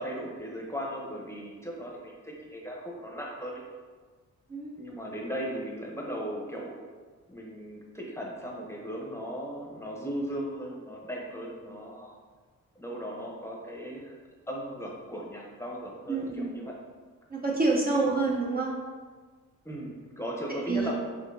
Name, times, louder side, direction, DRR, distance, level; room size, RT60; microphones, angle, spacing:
voice 1, 0.0-3.6 4.8-6.8 7.3-12.1 12.8-14.2 14.5-16.7 18.0-18.2 19.6-20.9, equal, 10° left, -2 dB, 0.8 m, -37 dB
voice 2, 16.1-16.5 17.3-18.7 20.7-20.9, right 3 dB, 30° right, -3 dB, 0.6 m, -27 dB
6.6 x 2.8 x 2.6 m, 1.5 s
cardioid pair, 100°, 32 cm